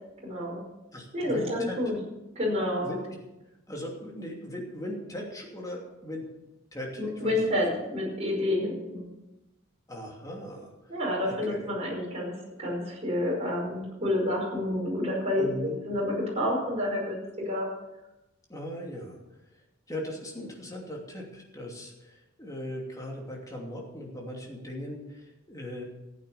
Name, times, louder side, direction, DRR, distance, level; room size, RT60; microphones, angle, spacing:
voice 1, 0.2-0.6 1.1-1.9 2.4-2.9 7.0-9.1 10.9-12.3 12.6-17.7, left 1 dB, 30° right, -4 dB, 5.3 m, -29 dB
voice 2, 0.9-2.1 2.8-3.0 3.7-6.3 6.7-7.4 9.9-10.7 11.2-11.7 15.4-15.8 18.5-19.2 19.9-25.8, left 1 dB, 15° left, -1 dB, 2.8 m, -38 dB
14.5 x 8.8 x 6.9 m, 0.98 s
head